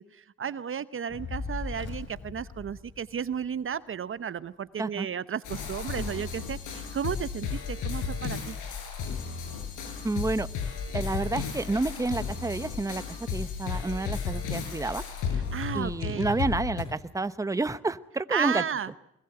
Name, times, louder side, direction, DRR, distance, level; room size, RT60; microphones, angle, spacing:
voice 1, 0.0-8.6 15.5-16.3 18.3-18.9, right 8 dB, 45° right, 15 dB, 0.8 m, -33 dB
Fire, 1.1-3.6, left 4 dB, 40° left, 3.1 m, -38 dB
sound 1, 5.4-16.8, left 6 dB, 90° left, 7.0 m, -34 dB
voice 2, 10.0-10.5 10.9-15.0 15.7-18.6, right 3 dB, 10° right, 13 dB, 1.0 m, -29 dB
22.5 x 21.5 x 7.9 m, 0.79 s
cardioid pair, 90°, 30 cm